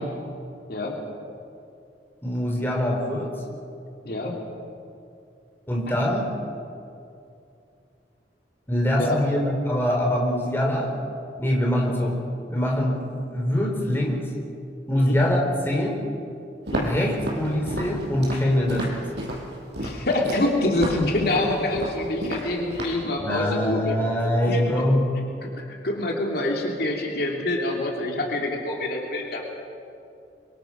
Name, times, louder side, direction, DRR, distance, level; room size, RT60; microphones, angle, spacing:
voice 1, 2.2-3.3 5.7-6.3 8.7-11.0 11.4-12.2 12.5-13.0 13.3-14.2 14.9-16.0 16.8-19.3 23.2-25.1, left 1 dB, 15° left, -1 dB, 4.0 m, -23 dB
voice 2, 4.0-4.4 9.0-9.2 11.9-12.0 14.9-15.2 16.7-16.9 19.8-23.9 24.5-24.6 25.2-29.4, left 1 dB, 55° left, 0 dB, 3.0 m, -26 dB
Walk footsteps, 16.7-23.0, right 1 dB, 70° right, 5.7 m, -32 dB
24.5 x 24.0 x 6.1 m, 2.6 s
head